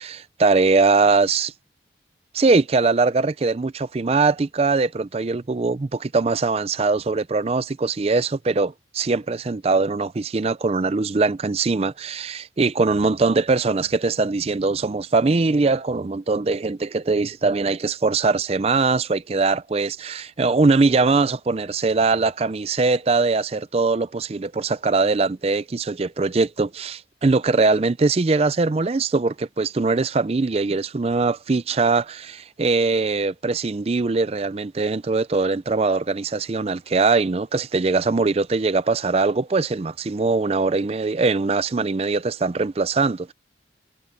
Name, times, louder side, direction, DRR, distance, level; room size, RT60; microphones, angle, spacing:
voice 1, 0.0-1.5 2.3-43.3, right 3 dB, 35° right, 0.4 m, -21 dB
head